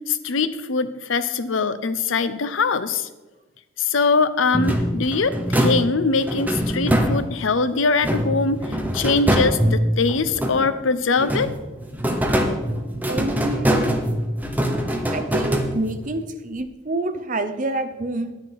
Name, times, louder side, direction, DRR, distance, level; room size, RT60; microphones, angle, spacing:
voice 1, 0.1-3.1 3.8-8.6 8.9-11.5, left 4 dB, 75° left, 13 dB, 0.7 m, -22 dB
sound 1, 4.5-7.6 8.0-10.8 11.2-16.1, equal, 10° right, 1.1 m, -23 dB
voice 2, 12.9-14.0 15.1-18.4, right 2 dB, 40° right, 10 dB, 0.8 m, -28 dB
11.0 x 9.7 x 4.7 m, 1.2 s
head